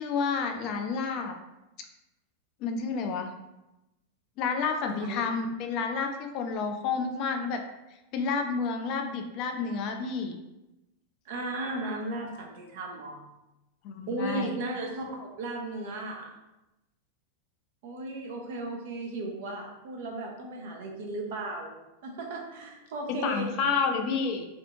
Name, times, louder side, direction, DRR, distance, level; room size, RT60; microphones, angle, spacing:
voice 1, 0.0-1.3 2.6-3.3 4.4-7.6 8.1-10.4 13.8-14.5 23.2-24.5, left 5 dB, 40° left, 4 dB, 0.3 m, -30 dB
voice 2, 4.9-5.3 11.3-13.3 14.1-16.3 17.8-21.8 22.0-23.5, right 2 dB, 50° right, 1 dB, 0.5 m, -35 dB
2.7 x 2.4 x 2.7 m, 0.96 s
figure-of-eight pair, 90°, 0 cm